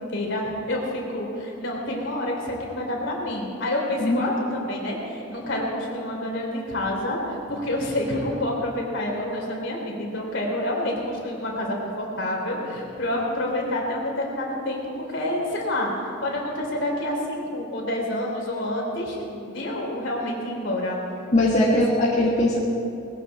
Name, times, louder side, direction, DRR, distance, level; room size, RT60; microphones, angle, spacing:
voice 1, 0.0-15.9 16.2-21.0 21.4-21.8, left 1 dB, 60° left, -1 dB, 3.3 m, -28 dB
voice 2, 21.3-22.6, left 1 dB, 35° left, -6 dB, 1.7 m, -20 dB
20.0 x 14.5 x 4.2 m, 2.6 s
head